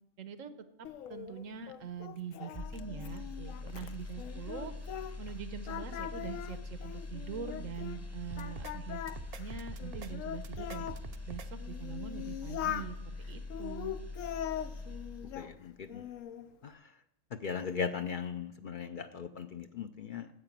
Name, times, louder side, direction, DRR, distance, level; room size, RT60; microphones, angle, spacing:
voice 1, 0.2-0.5 1.1-4.7 5.2-9.0 9.4-10.9 11.3-13.0 13.3-14.0, right 7 dB, 90° right, 10 dB, 1.3 m, -43 dB
Singing, 0.8-5.4 5.6-8.0 8.4-11.0 11.6-12.9 13.5-15.5 15.9-16.5, left 10 dB, 90° left, 1.0 m, -41 dB
sound 1, 2.5-15.7 16.0-16.2, left 3 dB, 15° left, 0.8 m, -43 dB
sound 2, 8.3-8.7 9.1-10.1 10.4-11.5, right 7 dB, 50° right, 0.4 m, -46 dB
voice 2, 15.3-16.1 16.6-16.9 17.3-20.3, left 6 dB, 55° left, 8 dB, 0.6 m, -38 dB
9.8 x 7.9 x 7.3 m, 0.84 s
omnidirectional pair, 1.3 m